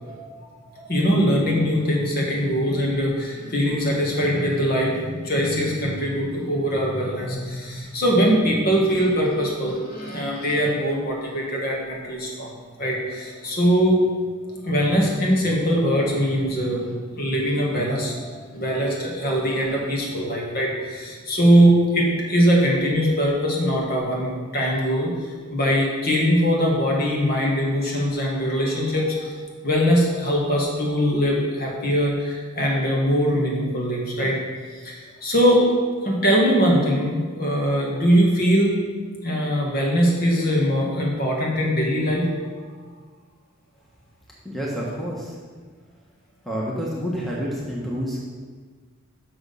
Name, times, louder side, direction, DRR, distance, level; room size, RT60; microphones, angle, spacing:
voice 1, 0.0-14.0 14.6-29.3 29.6-34.4 34.8-35.7 36.0-38.8 39.2-42.3, equal, 45° left, -2 dB, 1.7 m, -22 dB
voice 2, 44.4-45.4 46.4-48.3, equal, ahead, -5 dB, 1.1 m, -28 dB
6.3 x 6.1 x 6.8 m, 1.5 s
head